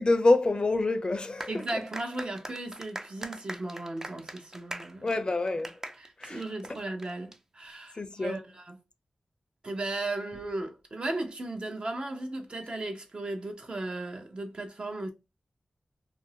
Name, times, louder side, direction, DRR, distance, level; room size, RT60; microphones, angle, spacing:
voice 1, 0.0-1.6 5.0-5.7 6.2-6.4 7.9-8.4, left 2 dB, 40° left, 0.5 m, -26 dB
sound 1, 1.4-7.4, right 1 dB, 20° right, 0.4 m, -42 dB
voice 2, 1.5-5.1 6.0-8.8 9.6-15.1, right 2 dB, 50° right, 0.7 m, -36 dB
2.6 x 2.0 x 2.7 m
cardioid pair, 55°, 2 cm